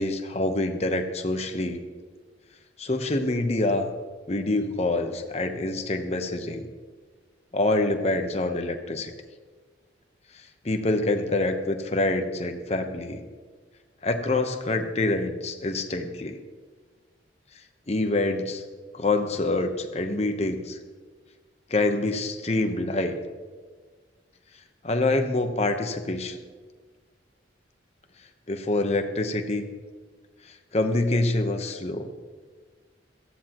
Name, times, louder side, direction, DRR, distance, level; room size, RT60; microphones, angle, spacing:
voice 1, 0.0-1.8 2.8-3.9 4.3-6.7 7.5-9.1 10.6-13.2 14.0-16.4 17.9-18.6 18.9-20.8 21.7-23.2 24.8-26.4 28.5-29.7 30.4-32.1, left 2 dB, 35° left, 6 dB, 0.9 m, -26 dB
17.5 x 14.0 x 3.0 m, 1.5 s
head